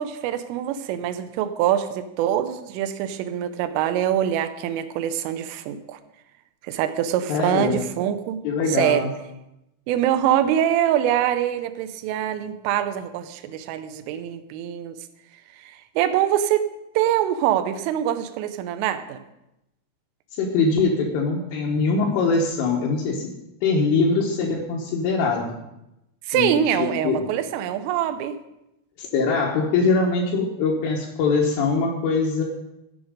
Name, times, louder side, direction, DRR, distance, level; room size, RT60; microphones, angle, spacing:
voice 1, 0.0-6.0 6.6-8.4 8.7-9.0 9.9-15.0 15.6-16.7 17.0-19.2 26.3-28.4, right 11 dB, 80° right, 9 dB, 3.3 m, -24 dB
voice 2, 7.3-7.8 8.4-9.1 20.4-23.3 23.6-25.6 26.3-27.3 29.0-32.4, left 4 dB, 80° left, -3 dB, 3.8 m, -22 dB
15.0 x 8.1 x 5.2 m, 0.88 s
omnidirectional pair, 5.8 m